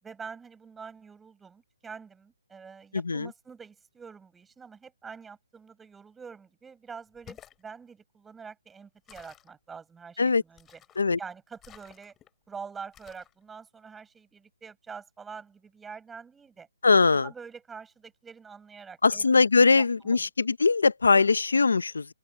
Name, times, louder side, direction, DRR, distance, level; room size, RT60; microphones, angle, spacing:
voice 1, 0.0-10.8 11.2-12.1 12.5-16.7 17.1-19.3 19.8-20.3, right 5 dB, 5° right, 7.3 m, -45 dB
voice 2, 2.9-3.3 10.2-10.4 11.0-11.2 16.8-17.3 19.0-22.1, left 4 dB, 90° left, 0.7 m, -21 dB
sound 1, 7.1-7.6 9.1-9.5 10.6-11.1 11.6-12.3 12.9-13.3, left 11 dB, 15° left, 3.0 m, -52 dB
open air
hypercardioid pair, 160°, 0 cm